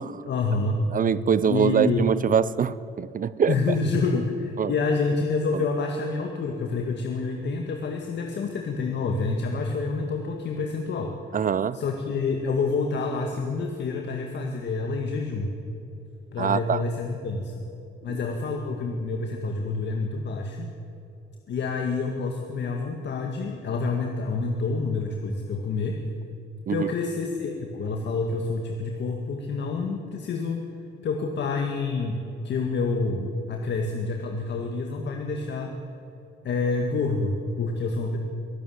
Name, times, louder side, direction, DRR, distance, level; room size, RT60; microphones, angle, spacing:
voice 1, 0.2-0.8 1.4-2.0 3.5-11.2 11.7-15.5 16.3-17.7 18.0-20.7 21.5-26.0 26.7-30.7 31.0-35.7 36.4-38.2, left 4 dB, 60° left, 3 dB, 2.0 m, -28 dB
voice 2, 0.9-3.5 4.6-4.7 5.5-5.6 11.3-11.8 16.4-16.8 26.7-26.9, right 7 dB, 45° right, 17 dB, 0.6 m, -24 dB
23.5 x 12.5 x 9.5 m, 2.8 s
cardioid pair, 90°, 20 cm